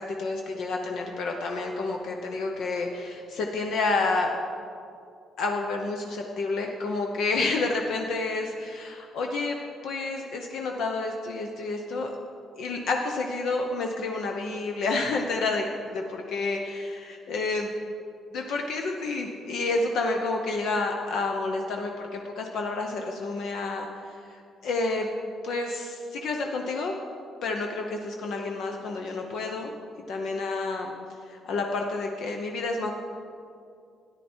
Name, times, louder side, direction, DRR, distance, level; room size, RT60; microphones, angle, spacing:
voice 1, 0.1-4.3 5.4-9.6 9.8-12.1 12.6-17.7 18.3-25.1 25.4-26.9 27.4-29.7 30.1-30.9 31.3-32.9, left 3 dB, 60° left, 2 dB, 0.9 m, -29 dB
13.5 x 10.0 x 4.4 m, 2.4 s
cardioid pair, 175°, 0 cm